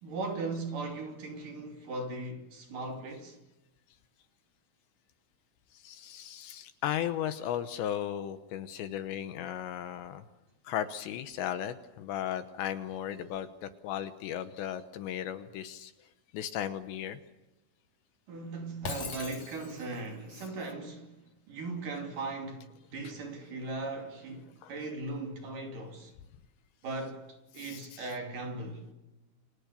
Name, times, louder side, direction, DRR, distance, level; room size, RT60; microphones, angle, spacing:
voice 1, 0.0-3.4 18.3-21.1 21.5-26.1 26.8-27.2 27.5-28.9, right 3 dB, 45° right, 4.0 m, -38 dB
voice 2, 5.7-10.2 10.6-15.9 16.3-17.2 24.6-24.7 27.6-28.1, left 10 dB, 75° left, 3.0 m, -36 dB
Shatter, 18.8-20.1, left 4 dB, 40° left, 3.8 m, -40 dB
29.5 x 25.5 x 6.9 m
omnidirectional pair, 5.7 m